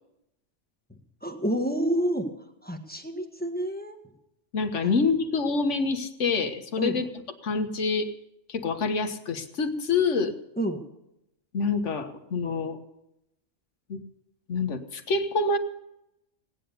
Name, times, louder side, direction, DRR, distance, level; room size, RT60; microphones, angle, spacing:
voice 1, 1.2-2.3 2.6-4.0 4.8-4.9 6.8-7.0 10.6-10.8, right 1 dB, 5° left, 4 dB, 1.5 m, -29 dB
voice 2, 4.5-7.1 7.4-8.1 8.5-10.3 11.5-12.8 13.9-14.0 14.5-15.6, left 4 dB, 70° left, 7 dB, 1.6 m, -26 dB
17.5 x 10.0 x 6.8 m, 0.84 s
omnidirectional pair, 1.3 m